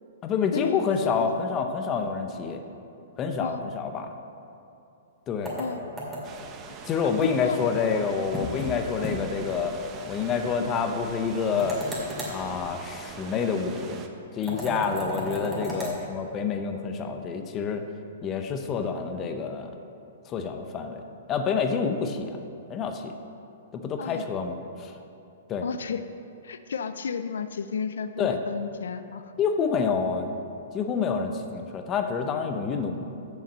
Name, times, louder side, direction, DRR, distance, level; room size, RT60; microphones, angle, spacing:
voice 1, 0.2-2.6 3.2-4.1 5.3-5.6 6.9-9.7 10.1-11.8 12.3-14.0 14.3-17.8 18.2-19.7 20.3-21.0 21.3-22.4 22.7-23.1 23.7-24.9 25.5-25.7 28.2-28.4 29.4-30.3 30.7-33.1, left 6 dB, 25° left, 6 dB, 0.7 m, -28 dB
sound 1, 5.4-6.5 8.3-8.7 9.0-9.2 9.5-9.6 11.6-12.4 14.4-16.0, equal, 10° right, 2.2 m, -33 dB
sound 2, 6.2-14.1, right 5 dB, 25° right, 0.7 m, -43 dB
voice 2, 7.0-8.0 10.6-10.7 24.0-24.2 25.6-26.0 26.4-29.3, left 6 dB, 85° left, 10 dB, 0.4 m, -32 dB
7.2 x 5.7 x 7.3 m, 2.7 s
hypercardioid pair, 140°, 0 cm